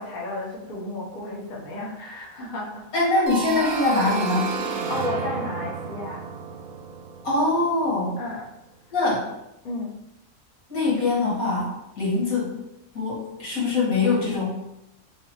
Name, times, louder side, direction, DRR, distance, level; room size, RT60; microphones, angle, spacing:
voice 1, 0.0-2.8 4.9-6.2 8.2-8.5 9.6-9.9, left 2 dB, 40° left, -4 dB, 0.8 m, -33 dB
voice 2, 2.9-4.6 7.2-8.2 8.9-9.2 10.7-12.6 12.9-14.7, left 3 dB, 80° left, -6 dB, 1.8 m, -23 dB
sound 1, 3.3-7.9, right 5 dB, 65° right, 0.6 m, -31 dB
3.4 x 3.3 x 2.8 m, 0.88 s
omnidirectional pair, 1.5 m